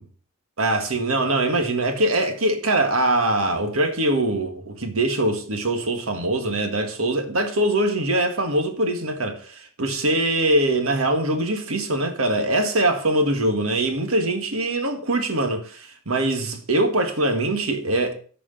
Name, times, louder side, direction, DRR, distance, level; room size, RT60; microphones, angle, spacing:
voice 1, 0.6-18.2, right 1 dB, 85° right, 1.7 m, -23 dB
9.0 x 5.0 x 6.8 m
head